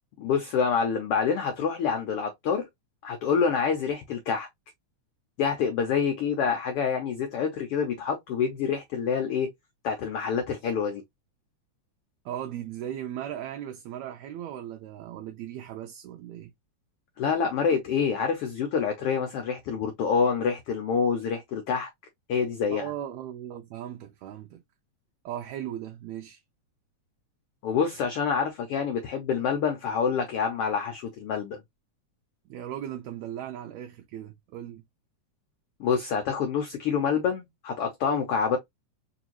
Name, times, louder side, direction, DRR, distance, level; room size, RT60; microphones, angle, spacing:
voice 1, 0.2-2.7 3.0-4.5 5.4-9.5 9.8-11.0 17.2-21.9 22.3-22.9 27.6-31.6 35.8-38.6, left 6 dB, 75° left, 1.3 m, -27 dB
voice 2, 12.2-16.5 22.7-24.6 25.2-26.4 32.5-34.8, right 11 dB, 75° right, 1.8 m, -37 dB
4.8 x 2.6 x 2.9 m
omnidirectional pair, 3.6 m